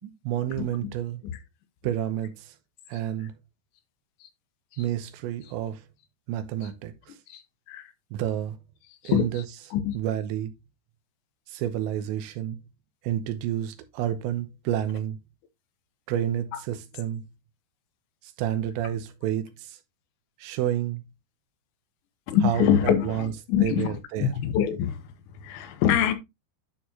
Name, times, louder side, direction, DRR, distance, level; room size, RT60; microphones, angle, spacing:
voice 1, 0.0-1.2 1.8-2.5 2.9-3.3 4.8-5.8 6.3-7.2 8.1-8.6 9.0-9.4 9.9-10.5 11.5-12.6 13.0-15.2 16.1-17.2 18.2-19.8 20.4-21.0 22.4-23.3 23.6-24.3, right 11 dB, 90° right, 3.1 m, -30 dB
voice 2, 22.3-25.0 25.4-26.1, left 9 dB, 85° left, 3.3 m, -24 dB
11.0 x 4.4 x 2.8 m
omnidirectional pair, 5.0 m